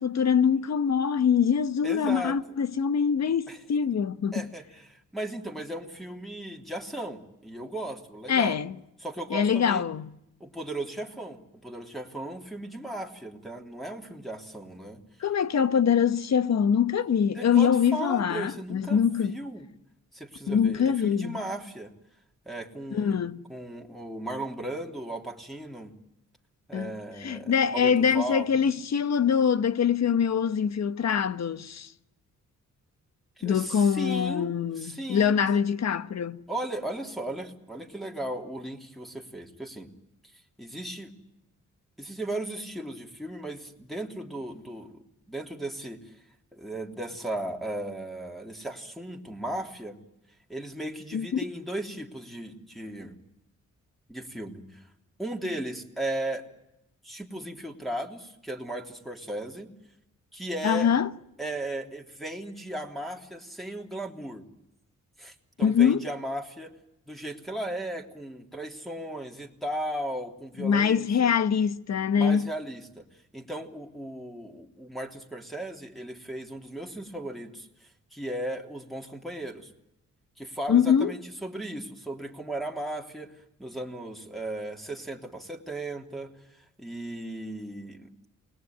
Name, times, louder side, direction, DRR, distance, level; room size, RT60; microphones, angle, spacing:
voice 1, 0.0-4.5 8.3-8.7 9.3-10.1 15.2-19.4 20.5-21.4 22.9-23.4 26.7-26.9 27.2-31.9 33.4-36.4 51.1-51.4 60.6-61.1 65.6-66.1 70.6-72.5 80.7-81.1, left 7 dB, 60° left, 1.2 m, -24 dB
voice 2, 1.8-2.4 3.5-3.6 4.3-8.6 9.0-9.8 10.4-15.0 17.3-19.7 20.1-21.9 22.4-25.9 26.7-28.5 33.4-35.6 36.5-39.9 40.6-41.1 42.0-46.2 46.5-50.0 50.5-53.2 54.1-54.9 55.2-56.4 57.0-59.7 60.3-60.9 61.4-64.4 65.2-66.7 67.1-71.3 72.1-73.0 73.3-79.7 80.4-88.3, right 1 dB, ahead, 3.4 m, -36 dB
29.0 x 20.0 x 9.4 m
cardioid pair, 90°, 31 cm